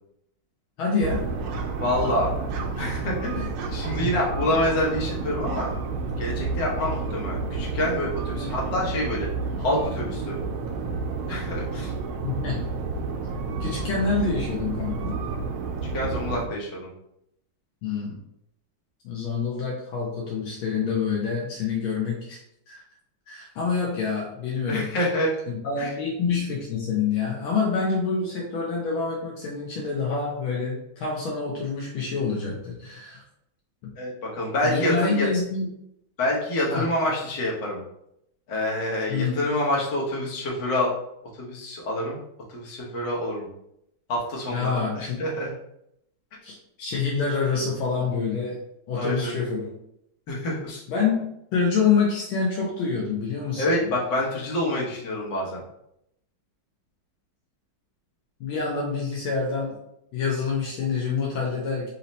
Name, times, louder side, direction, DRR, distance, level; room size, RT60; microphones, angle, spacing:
voice 1, 0.8-1.2 3.4-3.5 3.9-4.1 8.4-8.5 12.2-12.7 13.6-15.2 17.8-18.2 19.0-22.4 22.7-22.8 23.3-24.9 25.5-33.2 33.8-33.9 34.6-35.7 36.7-36.9 39.1-39.3 44.5-45.2 46.4-48.6 48.9-49.7 50.9-53.6 58.4-59.8 60.1-61.9, left 5 dB, 80° left, -3 dB, 1.6 m, -27 dB
sound 1, 1.0-16.5, right 4 dB, 85° right, 1.5 m, -30 dB
voice 2, 1.8-2.3 2.8-5.7 6.2-9.3 9.6-10.4 11.3-11.9 15.9-16.9 24.6-25.4 25.8-25.9 34.0-35.3 36.2-37.8 38.5-40.9 41.4-42.2 42.5-43.5 44.1-45.5 48.9-49.3 50.3-50.8 53.6-55.6, left 1 dB, 65° left, -4 dB, 1.7 m, -27 dB
4.3 x 2.8 x 4.0 m, 0.78 s
omnidirectional pair, 2.2 m